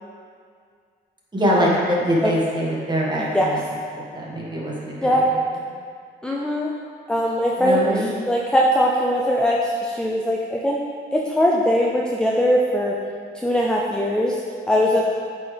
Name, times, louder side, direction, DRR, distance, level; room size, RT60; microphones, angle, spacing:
voice 1, 1.3-3.6 3.9-5.6 7.6-8.2, equal, 20° right, -5 dB, 1.6 m, -23 dB
voice 2, 6.2-6.7 7.1-7.8 8.3-10.8 11.1-12.9 13.4-14.3 14.7-15.1, equal, 5° left, -3 dB, 0.5 m, -20 dB
8.4 x 4.1 x 3.4 m, 2.2 s
cardioid pair, 90°, 20 cm